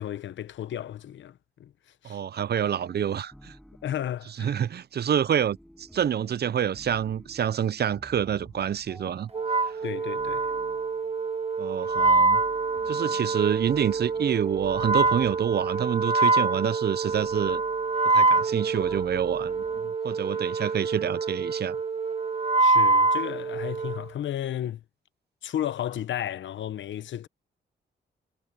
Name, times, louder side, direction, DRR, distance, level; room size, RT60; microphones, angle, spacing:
voice 1, 0.0-2.2 3.8-4.6 9.8-10.4 22.6-24.8 25.4-27.3, left 11 dB, 75° left, 1.0 m, -33 dB
voice 2, 2.0-3.6 4.4-9.8 11.6-12.4 12.9-17.6 18.0-21.8, right 9 dB, 55° right, 0.7 m, -28 dB
sound 1, 2.5-19.9, equal, ahead, 6.5 m, -52 dB
Wind instrument woodwind instrument, 9.3-24.1, right 3 dB, 30° right, 1.4 m, -25 dB
cardioid pair, 65°, 19 cm